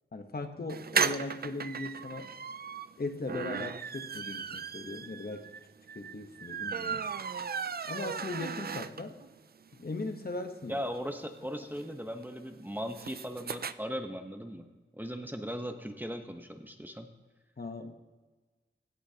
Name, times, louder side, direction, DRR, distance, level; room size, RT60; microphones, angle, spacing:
voice 1, 0.1-2.3 3.0-5.5 5.9-7.1 7.8-9.1 9.7-10.8 17.6-17.9, left 3 dB, 50° left, 6 dB, 1.1 m, -38 dB
sound 1, 0.7-9.3 9.7-9.8 10.0-10.1 10.3-13.7, right 6 dB, 50° right, 0.4 m, -36 dB
voice 2, 10.7-14.6 14.9-17.1, equal, 10° right, 5 dB, 1.0 m, -38 dB
17.0 x 10.0 x 2.9 m, 1.3 s
wide cardioid pair, 60°, 20 cm